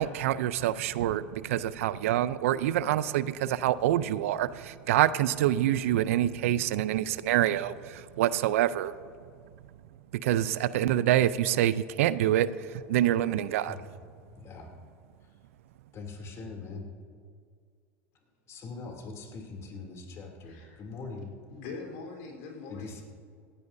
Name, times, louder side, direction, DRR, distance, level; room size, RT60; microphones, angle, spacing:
voice 1, 0.0-8.9 10.2-12.5 12.9-13.8, right 12 dB, 80° right, 16 dB, 0.5 m, -26 dB
voice 2, 14.3-14.7 15.9-16.9 18.5-21.3 22.7-23.0, left 4 dB, 40° left, 1 dB, 2.8 m, -42 dB
voice 3, 20.4-20.8 21.5-23.0, left 4 dB, 75° left, 1 dB, 3.9 m, -42 dB
17.5 x 14.5 x 2.7 m, 2.1 s
supercardioid pair, 105°, 7 cm